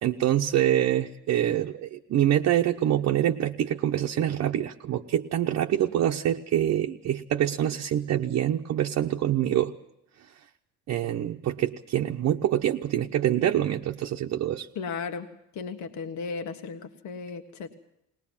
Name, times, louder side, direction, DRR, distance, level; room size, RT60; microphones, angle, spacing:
voice 1, 0.0-9.7 10.9-14.7, right 11 dB, 55° right, 0 dB, 1.0 m, -25 dB
voice 2, 14.7-15.3 15.5-17.8, left 5 dB, 65° left, 6 dB, 1.7 m, -35 dB
20.5 x 20.0 x 7.4 m, 0.79 s
cardioid pair, 145°, 31 cm